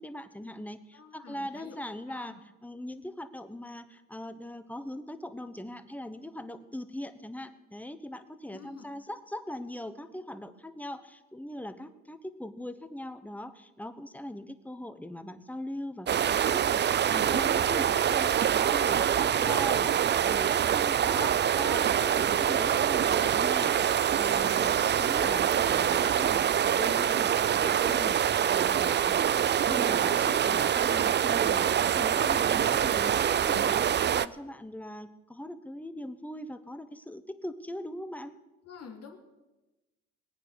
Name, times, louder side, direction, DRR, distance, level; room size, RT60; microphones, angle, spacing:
voice 1, 0.0-2.3 2.6-33.9 34.1-38.3, left 1 dB, 5° left, 11 dB, 1.1 m, -41 dB
voice 2, 0.9-1.8 2.1-2.4 8.5-8.9 19.2-19.5 38.6-39.2, left 6 dB, 55° left, 3 dB, 2.2 m, -48 dB
sound 1, 16.1-34.3, right 9 dB, 35° right, 0.4 m, -25 dB
20.5 x 9.0 x 6.4 m, 1.1 s
cardioid pair, 90°, 30 cm